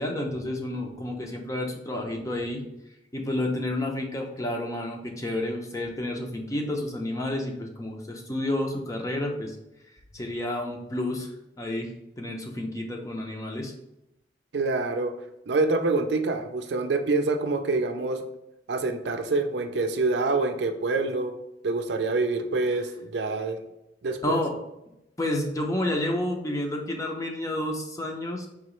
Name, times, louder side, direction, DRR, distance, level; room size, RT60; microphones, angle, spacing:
voice 1, 0.0-2.6 3.1-9.6 10.1-11.3 11.6-13.7 24.2-24.5 25.2-28.5, left 1 dB, 20° left, 2 dB, 0.6 m, -30 dB
voice 2, 14.5-15.1 15.5-18.2 18.7-21.3 21.6-23.6 24.0-24.4, right 3 dB, 75° right, 6 dB, 0.5 m, -26 dB
4.8 x 3.0 x 3.0 m, 0.87 s
head